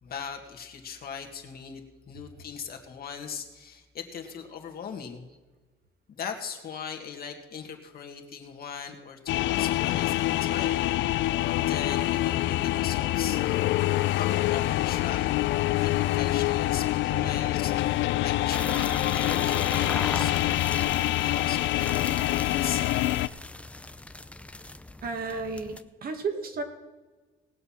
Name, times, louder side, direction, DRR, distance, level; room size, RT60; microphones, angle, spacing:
voice 1, 0.0-5.3 6.1-13.4 14.1-15.2 15.8-22.8, left 7 dB, 50° left, 3 dB, 1.9 m, -39 dB
sound 1, 9.3-23.3, left 16 dB, 70° left, 0.4 m, -26 dB
sound 2, 18.5-25.8, left 2 dB, 5° left, 0.6 m, -38 dB
voice 2, 25.0-26.6, right 4 dB, 50° right, 5 dB, 1.9 m, -33 dB
19.0 x 6.9 x 5.8 m, 1.3 s
cardioid pair, 100°, 20 cm